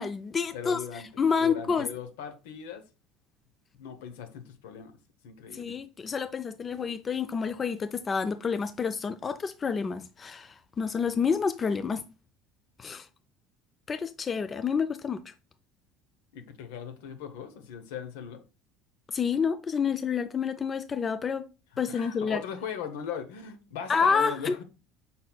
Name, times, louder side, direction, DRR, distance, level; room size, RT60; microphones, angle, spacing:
voice 1, 0.0-1.9 5.5-12.0 12.8-13.1 13.9-15.2 19.1-21.5 21.8-22.4 23.9-24.6, left 6 dB, 30° left, 0.4 m, -29 dB
voice 2, 0.5-1.1 1.4-2.8 3.8-4.9 5.2-5.7 16.3-18.4 21.9-24.6, left 7 dB, 85° left, 0.8 m, -39 dB
5.4 x 4.2 x 2.2 m
supercardioid pair, 100°, 0 cm